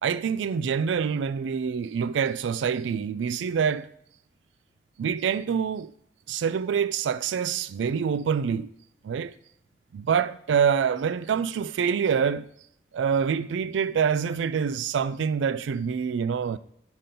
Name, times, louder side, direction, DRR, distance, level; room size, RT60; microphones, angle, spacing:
voice 1, 0.0-3.9 5.0-5.9 6.3-8.7 9.0-9.3 9.9-12.5 12.9-16.6, right 7 dB, 90° right, 0.3 m, -26 dB
6.7 x 4.1 x 3.7 m
head